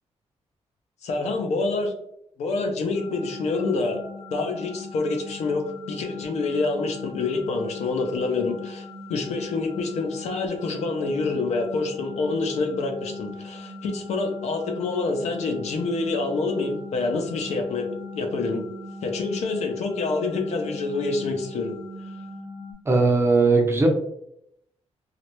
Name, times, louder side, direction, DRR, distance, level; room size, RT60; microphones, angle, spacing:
voice 1, 1.0-1.9 2.4-4.0 4.3-17.9 18.1-18.6 19.0-21.7, left 3 dB, 80° left, 4 dB, 0.6 m, -27 dB
sound 1, 2.9-22.7, left 3 dB, 55° right, 0.8 m, -40 dB
voice 2, 22.9-23.9, right 3 dB, 20° right, 2 dB, 0.5 m, -18 dB
3.1 x 2.4 x 2.9 m, 0.75 s
wide cardioid pair, 150°, 11 cm